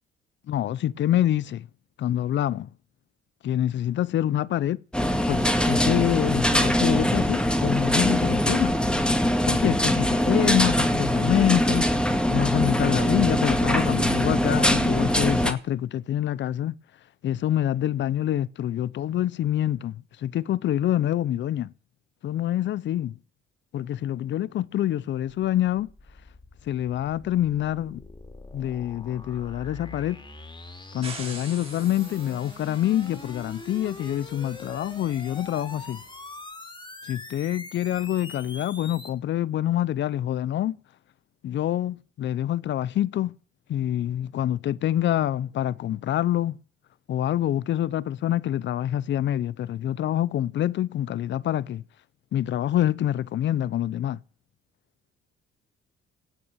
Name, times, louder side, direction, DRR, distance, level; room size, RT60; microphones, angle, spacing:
voice 1, 0.5-1.7 2.0-2.7 3.4-4.8 5.3-8.7 9.5-11.9 12.3-16.7 17.2-21.7 22.2-23.1 23.7-25.9 26.7-28.0 28.5-30.2 30.9-36.0 37.1-40.8 41.4-43.3 43.7-46.6 47.1-51.8 52.3-54.2, left 12 dB, 65° left, 0.8 m, -26 dB
sound 1, 4.9-15.5, equal, 5° left, 2.0 m, -22 dB
sound 2, 25.8-39.1, left 2 dB, 25° left, 3.1 m, -43 dB
sound 3, 31.0-36.1, right 4 dB, 30° right, 6.0 m, -46 dB
17.5 x 6.0 x 9.0 m
cardioid pair, 90°, 20 cm